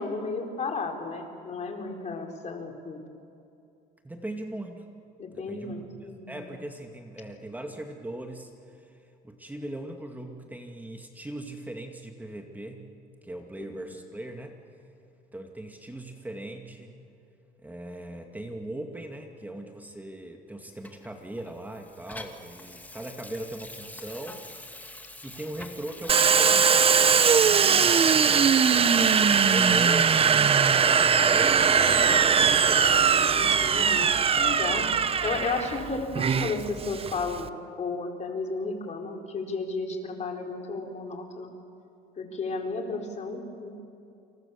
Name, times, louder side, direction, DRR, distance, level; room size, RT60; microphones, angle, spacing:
voice 1, 0.0-3.0 5.2-6.4 13.7-13.8 33.3-34.9 35.2-41.5 42.2-43.7, left 3 dB, 40° left, 3 dB, 4.2 m, -33 dB
voice 2, 4.0-4.9 5.3-12.8 13.2-14.6 15.3-17.0 17.6-24.4 25.2-32.8, right 1 dB, 10° right, 3 dB, 2.3 m, -39 dB
Water tap faucet / Sink (filling or washing), 20.8-30.1 30.6-30.8, left 2 dB, 10° left, 2.4 m, -45 dB
Domestic sounds home sounds, 26.1-37.5, right 6 dB, 35° right, 1.0 m, -21 dB
29.0 x 28.0 x 7.2 m, 2.6 s
cardioid pair, 110°, 17 cm